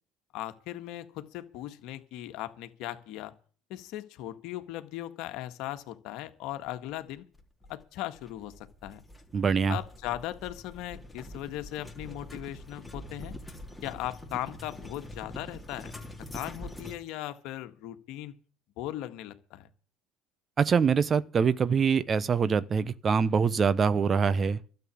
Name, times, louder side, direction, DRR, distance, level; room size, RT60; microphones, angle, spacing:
voice 1, 0.3-3.3 3.7-7.2 7.7-9.0 9.7-13.3 13.8-15.9 16.3-18.3 18.8-19.7, left 14 dB, 70° left, 1.6 m, -38 dB
sound 1, 7.3-17.0, left 1 dB, 10° left, 2.9 m, -44 dB
voice 2, 9.3-9.8 20.6-24.6, right 6 dB, 35° right, 0.9 m, -24 dB
12.5 x 8.1 x 8.6 m
hypercardioid pair, 80°, 0 cm